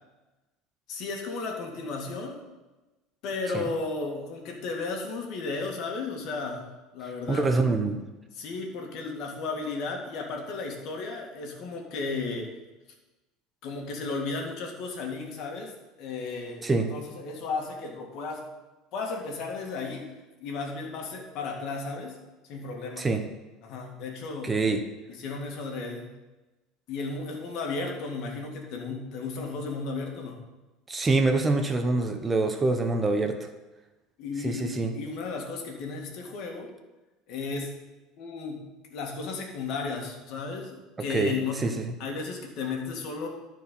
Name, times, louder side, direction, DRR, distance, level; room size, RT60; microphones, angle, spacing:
voice 1, 0.9-2.4 3.2-7.5 8.3-12.5 13.6-18.5 18.9-20.1 20.4-22.2 22.5-23.1 23.6-24.5 25.1-26.1 26.9-30.4 34.2-36.7 37.3-37.7 38.2-38.7 38.9-41.7 42.0-43.3, left 4 dB, 60° left, 1 dB, 2.1 m, -34 dB
voice 2, 7.3-8.0 16.6-16.9 23.0-23.2 24.4-24.8 30.9-33.4 34.4-34.9 41.1-41.9, right 3 dB, 20° right, 6 dB, 0.8 m, -25 dB
12.5 x 4.6 x 5.5 m, 1.1 s
supercardioid pair, 120°, 0 cm